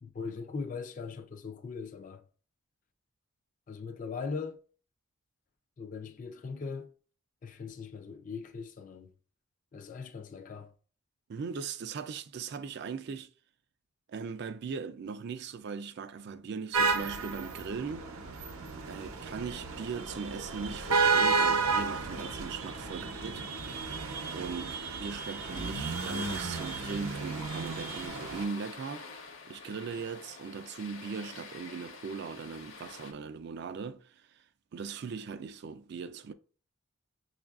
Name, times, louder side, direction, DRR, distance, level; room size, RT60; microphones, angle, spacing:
voice 1, 0.0-2.2 3.7-4.6 5.8-6.9 7.4-9.1 9.7-10.7, left 5 dB, 35° left, 0.3 m, -40 dB
voice 2, 11.3-13.3 14.1-18.1 18.9-23.5 24.3-29.1 29.5-34.4 34.7-36.3, right 5 dB, 50° right, 0.3 m, -39 dB
sound 1, 16.7-28.4, right 4 dB, 85° right, 0.6 m, -32 dB
sound 2, 25.1-33.1, left 4 dB, 65° left, 0.8 m, -48 dB
6.2 x 2.4 x 2.3 m
head